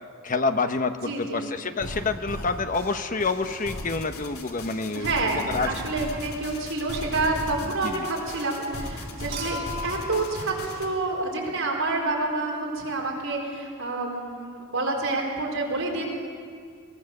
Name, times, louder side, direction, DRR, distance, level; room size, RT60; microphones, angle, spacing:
voice 1, 0.2-5.7 7.8-8.1, left 4 dB, 40° left, 8 dB, 1.0 m, -28 dB
voice 2, 0.9-1.4 4.9-16.1, right 2 dB, 70° right, -1 dB, 4.5 m, -28 dB
sound 1, 1.8-10.9, left 1 dB, 80° left, 2.9 m, -37 dB
Human group actions / Chink clink / Liquid, 9.3-11.7 13.2-13.3, left 2 dB, 45° right, 5.4 m, -38 dB
22.0 x 17.5 x 6.7 m, 2.1 s
head